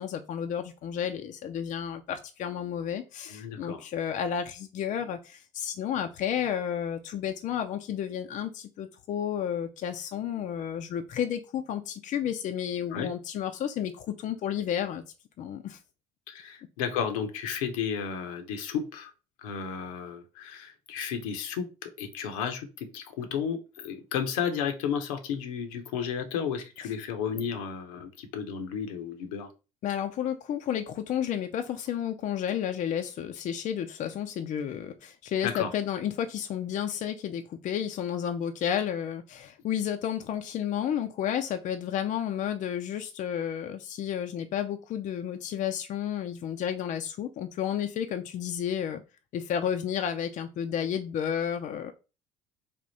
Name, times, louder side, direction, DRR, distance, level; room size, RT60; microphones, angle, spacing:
voice 1, 0.0-15.0 15.4-15.8 29.8-49.0 49.3-51.9, left 9 dB, 45° left, 7 dB, 0.5 m, -31 dB
voice 2, 3.3-3.8 12.9-13.1 16.3-19.1 19.4-29.5 35.4-35.7, left 7 dB, 75° left, 7 dB, 0.7 m, -33 dB
3.5 x 2.4 x 4.0 m, 0.30 s
hypercardioid pair, 60°, 17 cm